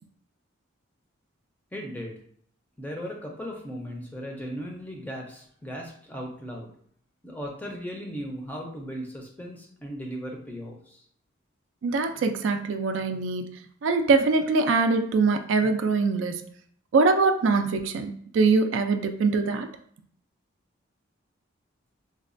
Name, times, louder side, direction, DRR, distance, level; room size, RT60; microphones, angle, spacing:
voice 1, 1.7-2.1 2.8-6.7 7.2-11.0, equal, 10° left, 0 dB, 0.5 m, -37 dB
voice 2, 11.8-13.5 13.8-16.4 16.9-19.7, right 4 dB, 65° right, 6 dB, 0.3 m, -23 dB
4.0 x 2.2 x 2.5 m, 0.62 s
head